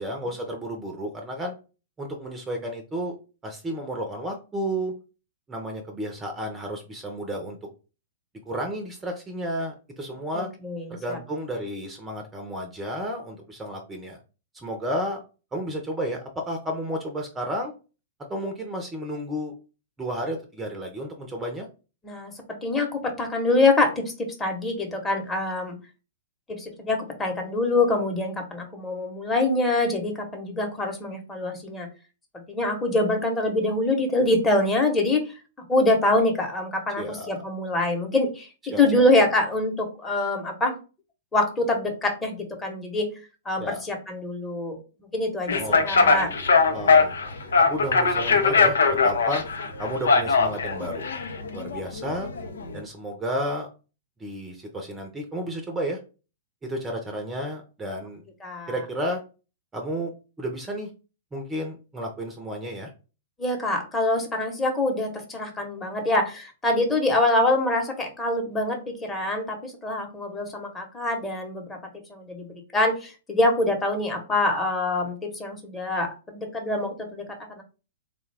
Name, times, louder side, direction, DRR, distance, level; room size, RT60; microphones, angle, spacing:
voice 1, 0.0-1.5 2.0-3.2 3.4-4.9 5.5-7.6 8.5-10.5 10.9-14.2 14.5-15.2 15.5-17.7 18.3-19.5 20.0-21.7 37.0-37.4 38.7-39.0 43.6-43.8 45.6-46.3 46.7-47.1 47.7-48.8 49.0-49.4 49.8-51.1 51.5-52.3 52.7-53.7 54.2-56.0 56.6-58.2 58.7-59.2 59.7-60.1 60.4-60.9 61.3-62.9, equal, 15° right, 3 dB, 0.7 m, -32 dB
voice 2, 10.3-11.2 22.0-22.3 22.6-25.8 26.5-31.9 32.5-35.3 35.7-40.7 41.3-43.1 43.4-44.8 45.1-46.3 58.4-58.7 63.4-71.8 72.1-77.6, left 2 dB, 15° left, 3 dB, 1.0 m, -25 dB
sound 1, 45.5-52.8, left 4 dB, 75° left, 0.6 m, -21 dB
3.7 x 2.3 x 3.3 m, 0.33 s
hypercardioid pair, 115°, 0 cm